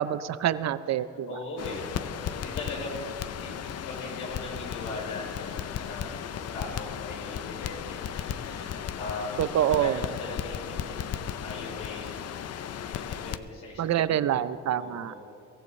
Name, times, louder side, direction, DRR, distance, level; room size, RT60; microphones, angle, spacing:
voice 1, 0.0-1.3 9.4-9.9 13.8-15.1, right 11 dB, 60° right, 14 dB, 0.6 m, -26 dB
voice 2, 1.2-1.9 2.2-12.2 12.8-13.9 14.2-14.3 14.7-15.2, left 2 dB, 90° left, -3 dB, 4.1 m, -39 dB
Crackle, 1.6-13.4, left 9 dB, 55° left, 0.6 m, -35 dB
23.5 x 14.5 x 3.2 m, 2.5 s
cardioid pair, 90°, 30 cm